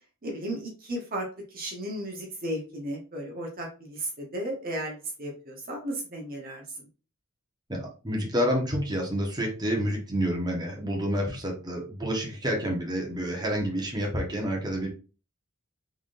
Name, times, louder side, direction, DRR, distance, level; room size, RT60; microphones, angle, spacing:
voice 1, 0.2-1.3 1.5-6.6, right 1 dB, 45° right, 0 dB, 0.9 m, -34 dB
voice 2, 7.7-14.9, equal, 20° right, 0 dB, 1.0 m, -29 dB
3.7 x 3.5 x 2.5 m, 0.35 s
head